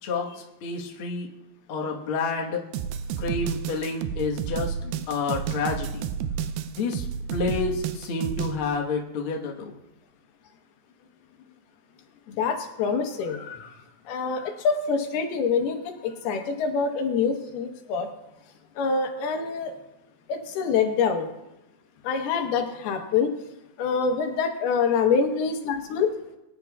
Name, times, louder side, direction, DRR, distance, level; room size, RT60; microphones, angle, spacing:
voice 1, 0.0-1.3 1.7-2.6 3.2-4.8 5.1-6.1 6.7-9.7, left 4 dB, 60° left, 0 dB, 1.4 m, -29 dB
sound 1, 2.7-8.6, right 8 dB, 80° right, 2.5 m, -31 dB
voice 2, 12.3-13.7 14.1-18.1 18.8-19.7 20.3-21.3 22.0-23.3 23.8-26.1, left 5 dB, 85° left, 5 dB, 3.2 m, -25 dB
23.0 x 10.5 x 2.4 m, 0.95 s
omnidirectional pair, 4.4 m